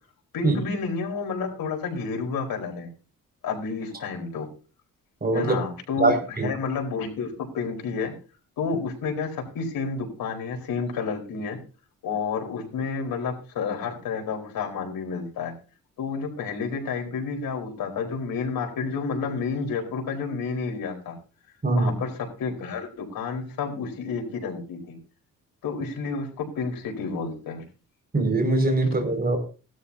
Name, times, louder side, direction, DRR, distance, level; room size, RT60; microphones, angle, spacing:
voice 1, 0.3-2.9 3.4-4.5 5.3-8.1 8.6-11.6 12.0-15.5 16.0-21.1 21.7-25.0 25.6-27.6, left 5 dB, 85° left, 1 dB, 4.5 m, -30 dB
voice 2, 5.2-5.6 6.0-6.5 21.6-22.0 28.1-29.4, right 2 dB, 25° right, 4 dB, 5.5 m, -22 dB
18.0 x 12.5 x 2.8 m, 0.35 s
cardioid pair, 80°, 34 cm